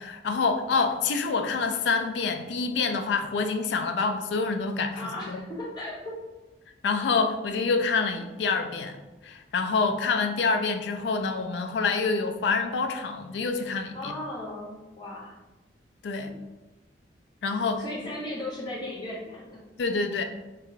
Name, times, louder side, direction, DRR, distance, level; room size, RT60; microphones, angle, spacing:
voice 1, 0.0-5.4 6.8-9.0 9.2-14.1 16.0-16.3 17.4-17.8 19.8-20.2, left 4 dB, 70° left, 6 dB, 0.3 m, -27 dB
voice 2, 4.9-6.1 13.9-15.3 16.3-16.4 17.7-19.6, left 1 dB, 25° left, -6 dB, 0.6 m, -36 dB
2.7 x 2.1 x 3.7 m, 1.1 s
head